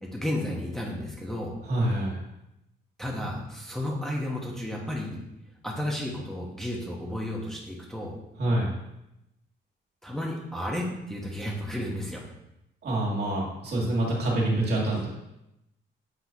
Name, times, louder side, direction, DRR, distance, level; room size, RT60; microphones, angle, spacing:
voice 1, 0.0-1.5 3.0-5.2 5.6-8.2 10.0-12.2, left 1 dB, ahead, -3 dB, 1.2 m, -32 dB
voice 2, 1.6-2.2 8.4-8.7 12.8-15.1, right 1 dB, 55° right, -3 dB, 2.3 m, -26 dB
8.1 x 3.9 x 3.0 m, 0.88 s
cardioid pair, 90°, 20 cm